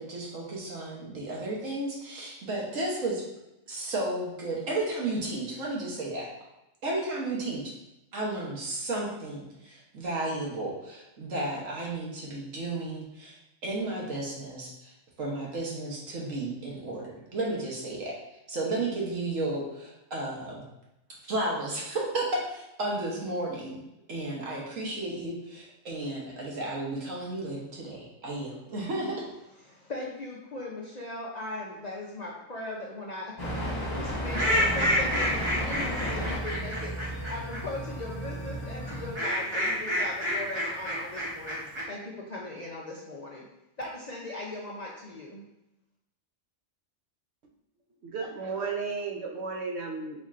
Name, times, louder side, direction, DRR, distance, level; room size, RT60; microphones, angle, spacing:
voice 1, 0.0-3.2 3.7-6.3 6.8-7.7 8.1-13.4 13.6-14.9 15.2-18.2 18.5-20.6 21.2-23.8 24.1-29.2, right 2 dB, 85° right, -3 dB, 1.4 m, -33 dB
voice 2, 29.6-33.3 33.6-41.6 41.9-43.4 43.8-45.4, left 2 dB, 50° left, -3 dB, 0.5 m, -39 dB
sound 1, 33.4-39.1, equal, 35° left, 1.5 m, -33 dB
sound 2, 34.3-37.6 38.9-41.8, equal, 25° right, 0.9 m, -28 dB
voice 3, 48.0-50.2, right 4 dB, 60° right, 1 dB, 0.9 m, -34 dB
4.2 x 4.2 x 2.5 m, 0.91 s
omnidirectional pair, 1.3 m